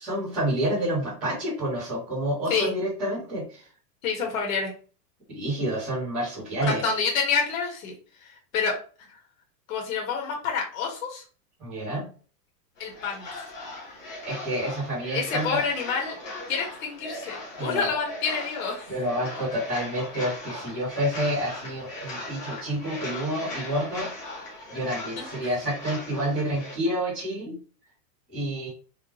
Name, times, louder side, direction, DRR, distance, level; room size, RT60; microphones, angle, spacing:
voice 1, 0.0-3.7 5.3-6.8 11.6-12.1 14.2-15.6 17.6-17.9 18.9-24.1 24.7-27.6 28.3-28.7, right 1 dB, 5° right, -14 dB, 0.5 m, -29 dB
voice 2, 4.0-4.7 6.6-7.9 8.2-8.8 9.7-11.2 12.8-13.4 15.1-16.2 16.5-18.9 25.2-25.3, left 5 dB, 55° left, 0 dB, 1.4 m, -28 dB
sound 1, 12.8-26.8, left 2 dB, 20° left, 0.8 m, -39 dB
3.5 x 3.1 x 2.9 m, 0.38 s
supercardioid pair, 180°, 49 cm